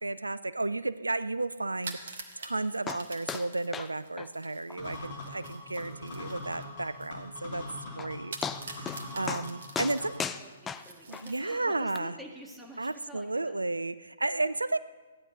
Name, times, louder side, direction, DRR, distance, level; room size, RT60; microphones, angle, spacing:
voice 1, 0.0-7.7 8.0-8.4 8.6-10.2 11.1-12.2 12.8-14.8, right 2 dB, 80° right, 15 dB, 0.4 m, -33 dB
sound 1, 1.7-7.2 7.5-7.6 8.3-11.8, right 3 dB, 55° right, 1.5 m, -46 dB
sound 2, 2.9-3.0 3.3-3.5 3.7-3.9 4.2-4.3 4.7-4.8 5.2-5.3 5.8-5.9 7.5-7.6 8.0-8.1 8.4-9.0 9.3-9.5 9.7-11.2 11.9-12.0, left 7 dB, 15° left, 0.4 m, -35 dB
sound 3, 4.8-10.3, left 2 dB, 40° left, 2.8 m, -43 dB
voice 2, 10.3-13.6, equal, ahead, -2 dB, 1.8 m, -48 dB
14.5 x 10.0 x 5.2 m, 1.3 s
figure-of-eight pair, 125°, 0 cm